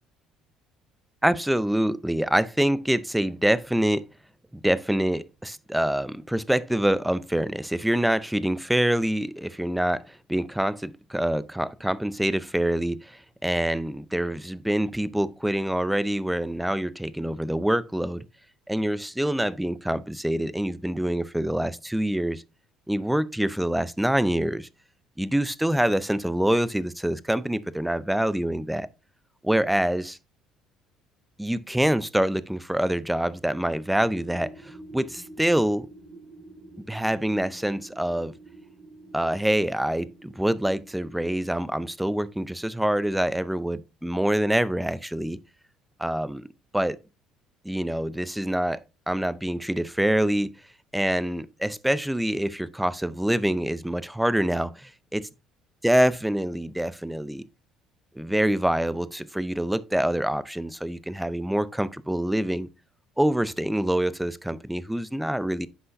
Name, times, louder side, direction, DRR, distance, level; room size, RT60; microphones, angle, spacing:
voice 1, 1.2-4.0 4.6-18.2 18.7-22.4 22.9-24.7 25.2-28.9 29.4-30.2 31.4-35.9 36.9-38.3 39.1-45.4 46.0-46.5 46.7-47.0 47.6-50.5 50.9-55.3 55.8-57.4 58.2-62.7 63.2-65.7, right 1 dB, 5° right, 0.5 m, -25 dB
sound 1, 34.0-41.4, right 2 dB, 45° right, 2.0 m, -48 dB
9.7 x 5.5 x 2.6 m
supercardioid pair, 90°, 0 cm